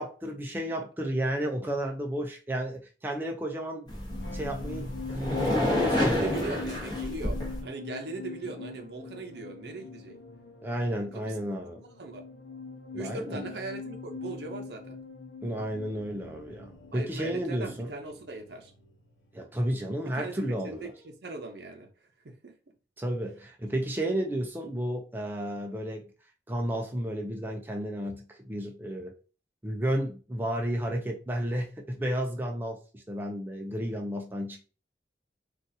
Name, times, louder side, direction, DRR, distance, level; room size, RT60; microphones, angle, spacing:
voice 1, 0.0-3.9 4.3-6.3 10.6-11.8 12.9-13.4 15.4-17.9 19.3-20.9 23.0-26.0 26.5-29.1 29.6-34.7, equal, 10° right, 0.4 m, -32 dB
sound 1, 3.9-20.5 20.8-21.1, left 4 dB, 85° left, 0.7 m, -44 dB
sound 2, 3.9-7.6, left 1 dB, 25° left, 0.9 m, -29 dB
voice 2, 5.9-10.2 11.1-11.4 12.0-12.2 13.0-15.0 16.9-18.7 20.0-20.3 20.6-21.9 22.2-22.6, right 3 dB, 70° right, 0.6 m, -39 dB
3.9 x 2.4 x 2.6 m
head